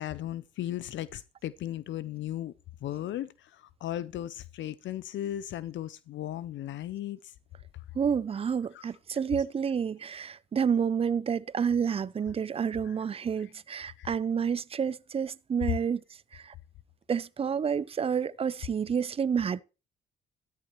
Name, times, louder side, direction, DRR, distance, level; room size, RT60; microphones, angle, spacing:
voice 1, 0.0-2.5 2.8-7.2 8.7-8.9 12.9-13.0 13.4-13.5 14.0-14.1, left 12 dB, 70° left, 0.5 m, -36 dB
voice 2, 8.0-16.0 17.1-19.6, right 7 dB, 30° right, 0.4 m, -29 dB
13.0 x 10.5 x 3.0 m
cardioid pair, 90°, 20 cm